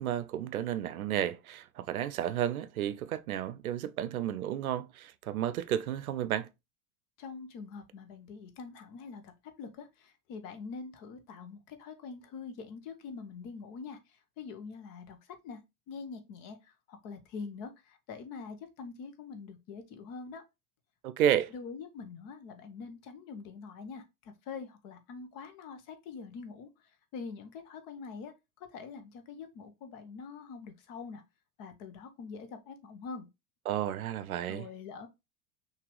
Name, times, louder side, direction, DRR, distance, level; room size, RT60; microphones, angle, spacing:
voice 1, 0.0-6.5 21.0-21.5 33.7-34.7, right 10 dB, 75° right, 0.6 m, -32 dB
voice 2, 7.2-15.6 15.9-20.4 21.5-28.3 28.7-31.2 31.6-33.3 34.5-35.1, left 5 dB, 45° left, 1.1 m, -44 dB
5.8 x 2.9 x 3.2 m
figure-of-eight pair, 80°, 44 cm